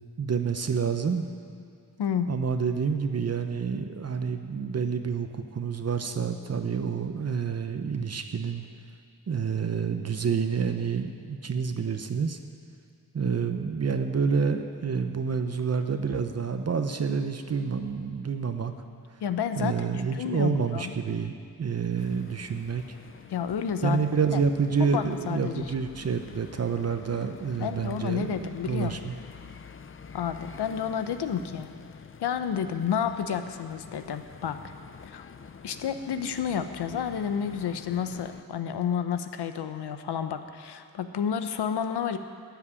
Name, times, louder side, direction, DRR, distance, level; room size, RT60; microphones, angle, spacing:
voice 1, 0.2-1.3 2.3-8.7 9.3-12.4 13.1-18.7 19.6-21.3 21.6-22.8 23.8-29.1, right 6 dB, 40° right, 7 dB, 0.8 m, -28 dB
voice 2, 19.2-20.9 23.3-24.0 24.3-24.4 24.8-25.7 27.6-29.0 30.1-31.7 32.2-34.6 35.0-35.3 35.6-42.2, left 8 dB, 85° left, 9 dB, 0.9 m, -30 dB
sound 1, 22.0-38.4, left 6 dB, 35° left, 0.5 m, -47 dB
13.0 x 7.4 x 9.8 m, 2.5 s
wide cardioid pair, 120°, 39 cm